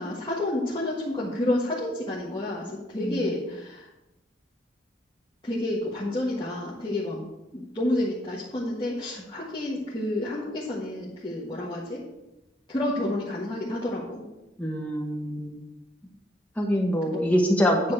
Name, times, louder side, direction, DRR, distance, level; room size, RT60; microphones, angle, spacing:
voice 1, 0.0-3.9 5.4-7.2 7.5-12.0 12.7-14.2 17.1-17.2, left 1 dB, 25° left, -9 dB, 1.6 m, -29 dB
voice 2, 14.6-15.5 16.6-17.8, equal, 10° left, -1 dB, 1.4 m, -24 dB
9.5 x 4.2 x 6.6 m, 0.96 s
head